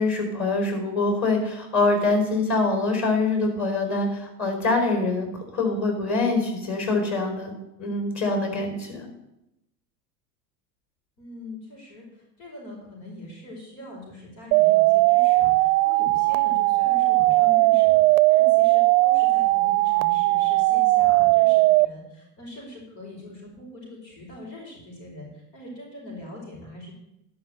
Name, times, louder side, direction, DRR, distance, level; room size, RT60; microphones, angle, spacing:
voice 1, 0.0-7.5 7.8-9.1, left 3 dB, 30° left, 3 dB, 4.3 m, -24 dB
voice 2, 11.2-26.9, left 1 dB, 75° left, -2 dB, 5.3 m, -42 dB
sound 1, 14.5-21.9, right 21 dB, 55° right, 0.5 m, -19 dB
11.5 x 5.6 x 7.9 m, 0.86 s
hypercardioid pair, 90°, 49 cm